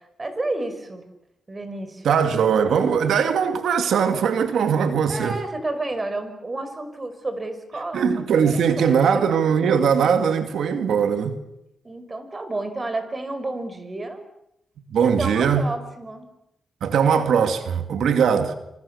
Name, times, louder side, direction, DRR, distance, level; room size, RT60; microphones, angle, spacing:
voice 1, 0.2-1.0 1.5-2.2 5.1-9.3 11.8-14.2 14.9-16.3, right 2 dB, 25° right, 5.7 m, -31 dB
voice 2, 2.0-5.4 7.9-11.4 14.9-15.6 16.8-18.5, right 7 dB, 85° right, 2.3 m, -20 dB
27.5 x 26.5 x 7.2 m
cardioid pair, 80°, 0 cm